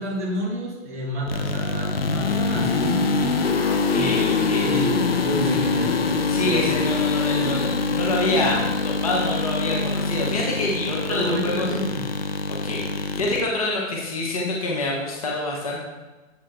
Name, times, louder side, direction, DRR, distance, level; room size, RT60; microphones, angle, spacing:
voice 1, 0.0-3.3 3.9-4.1 4.6-4.9 5.2-6.0 11.1-12.0, equal, 10° right, -9 dB, 0.6 m, -29 dB
sound 1, 1.3-13.5, left 4 dB, 45° left, 0.6 m, -24 dB
voice 2, 3.5-4.8 5.5-5.6 6.3-11.7 12.5-15.8, left 2 dB, 25° left, -2 dB, 0.9 m, -27 dB
7.7 x 4.6 x 4.1 m, 1.2 s
hypercardioid pair, 175°, 40 cm